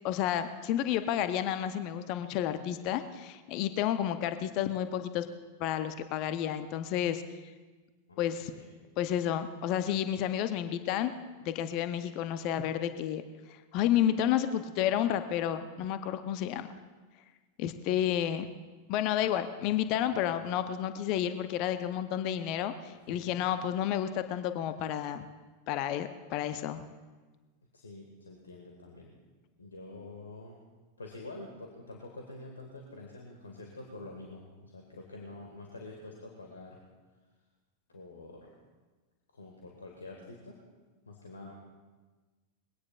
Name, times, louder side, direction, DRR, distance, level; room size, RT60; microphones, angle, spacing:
voice 1, 0.0-5.3 5.6-7.2 8.2-8.5 9.0-11.1 11.4-13.2 13.5-16.7 17.6-18.5 18.9-25.3 25.7-26.8, left 10 dB, 40° left, 10 dB, 0.7 m, -31 dB
voice 2, 8.1-8.7 20.1-20.2 23.1-23.2 27.7-29.1 29.6-30.6 31.0-36.8 37.9-38.5 39.3-40.6 41.1-41.6, left 2 dB, 75° left, 1 dB, 1.7 m, -47 dB
21.5 x 17.0 x 2.4 m, 1.3 s
figure-of-eight pair, 90°, 0 cm